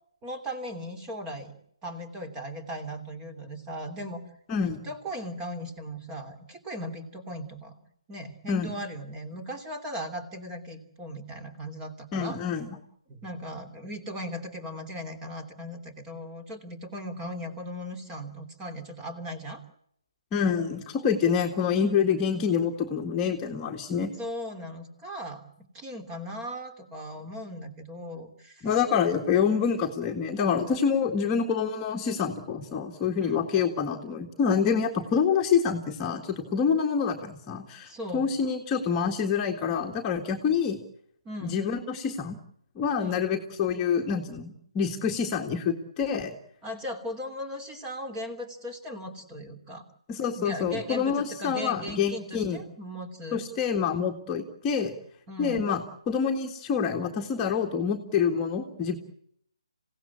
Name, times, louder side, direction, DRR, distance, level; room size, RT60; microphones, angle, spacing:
voice 1, 0.2-1.6 1.8-4.2 4.6-7.7 8.1-12.4 13.1-19.6 24.2-25.4 25.7-28.7 33.2-33.5 37.8-38.3 41.2-41.6 43.0-43.2 46.6-49.8 50.4-53.4 55.3-55.8, equal, 15° right, 7 dB, 3.0 m, -38 dB
voice 2, 12.1-12.7 20.3-24.1 28.6-40.8 41.4-42.4 42.8-46.3 50.1-52.6 53.3-54.9 55.4-59.0, left 6 dB, 15° left, 0 dB, 1.8 m, -27 dB
27.5 x 17.0 x 8.6 m, 0.73 s
figure-of-eight pair, 145°, 3 cm